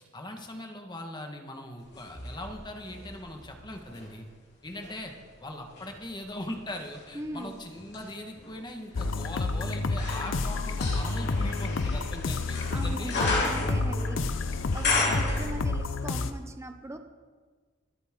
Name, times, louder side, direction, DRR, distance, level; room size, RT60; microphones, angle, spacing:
voice 1, 0.1-4.3 4.6-5.1 5.4-13.2, left 1 dB, 25° left, 3 dB, 1.5 m, -40 dB
sound 1, 1.9-4.1 4.6-16.0 16.3-16.4, left 3 dB, 60° left, 4.0 m, -34 dB
voice 2, 7.1-7.6 12.7-14.3 14.6-17.0, right 1 dB, 15° right, 7 dB, 0.7 m, -39 dB
sound 2, 8.9-16.3, left 3 dB, 80° left, 0.6 m, -30 dB
24.5 x 8.2 x 3.7 m, 1.4 s
head